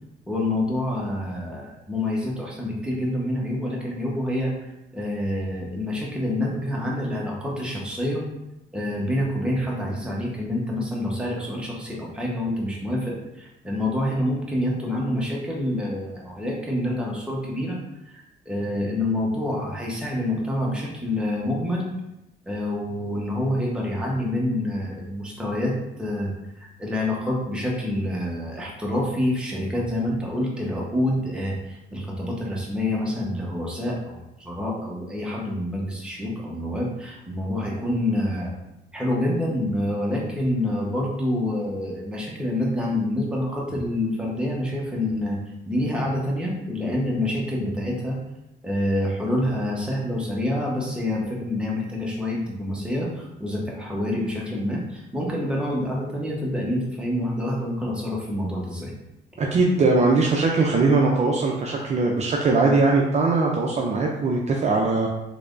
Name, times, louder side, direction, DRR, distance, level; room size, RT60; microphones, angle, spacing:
voice 1, 0.3-4.5 4.9-8.2 8.7-17.8 18.5-21.9 22.5-26.3 26.6-38.5 38.9-45.4 45.7-48.2 48.6-58.9, left 1 dB, 5° right, -4 dB, 0.9 m, -27 dB
voice 2, 59.4-65.1, right 3 dB, 35° right, -1 dB, 0.5 m, -20 dB
3.3 x 3.2 x 2.5 m, 0.90 s
cardioid pair, 100°, 19 cm